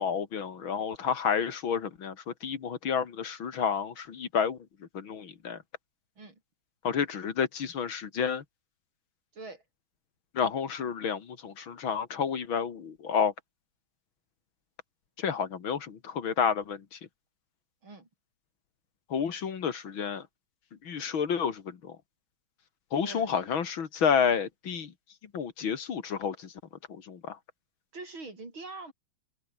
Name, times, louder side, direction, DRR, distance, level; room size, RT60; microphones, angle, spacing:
voice 1, 0.0-4.6 4.9-5.6 6.8-8.4 10.3-13.3 15.2-17.0 19.1-20.2 20.8-22.0 22.9-24.9 25.3-26.5 27.1-27.4, left 7 dB, 70° left, 2.7 m, -30 dB
voice 2, 9.3-9.6 17.8-18.1 23.0-23.3 27.9-28.9, right 3 dB, 70° right, 6.6 m, -43 dB
omnidirectional pair, 2.3 m